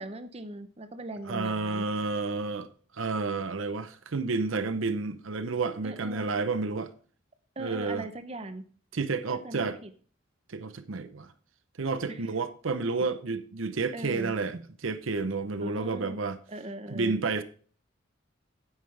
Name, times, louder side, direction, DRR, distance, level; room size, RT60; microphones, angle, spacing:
voice 1, 0.0-1.9 5.8-6.3 7.6-8.6 9.4-9.9 12.1-12.2 13.9-14.3 15.6-16.2 16.5-17.2, right 2 dB, 30° right, 0.8 m, -39 dB
voice 2, 1.3-2.7 3.0-6.9 7.6-8.1 8.9-9.8 10.5-11.3 11.8-16.4 16.9-17.4, right 4 dB, 75° right, 0.7 m, -30 dB
9.4 x 9.0 x 3.3 m
head